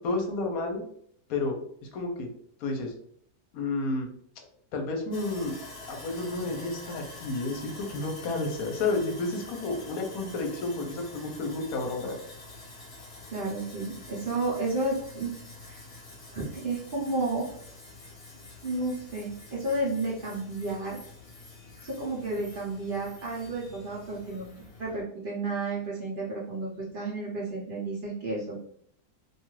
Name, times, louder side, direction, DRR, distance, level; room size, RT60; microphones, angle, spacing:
voice 1, 0.0-0.8 1.3-2.3 2.6-2.9 3.5-4.1 4.7-5.6 5.9-12.2, left 3 dB, 65° left, 3 dB, 1.0 m, -31 dB
Sawing, 5.1-25.0, left 2 dB, 45° left, 0.9 m, -47 dB
voice 2, 13.3-15.3 15.7-15.8 16.3-17.5 18.6-21.0 21.8-24.5 24.8-28.5, right 2 dB, 70° right, -6 dB, 0.5 m, -32 dB
2.7 x 2.3 x 3.0 m, 0.65 s
omnidirectional pair, 1.8 m